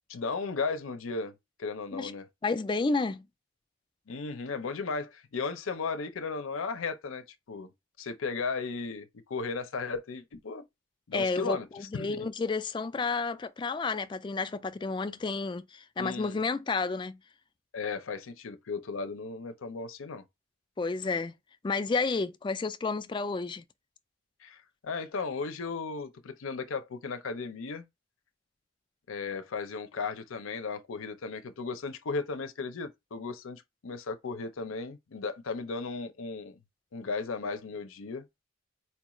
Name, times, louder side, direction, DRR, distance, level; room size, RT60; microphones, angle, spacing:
voice 1, 0.1-2.3 4.1-7.7 8.0-10.6 11.1-11.7 11.9-12.3 16.0-16.4 17.7-20.2 24.4-27.8 29.1-36.6 36.9-38.2, left 4 dB, 85° left, 0.6 m, -35 dB
voice 2, 2.4-3.2 11.1-17.2 20.8-21.3 21.6-23.6, left 4 dB, 25° left, 0.3 m, -31 dB
4.5 x 2.4 x 2.9 m
head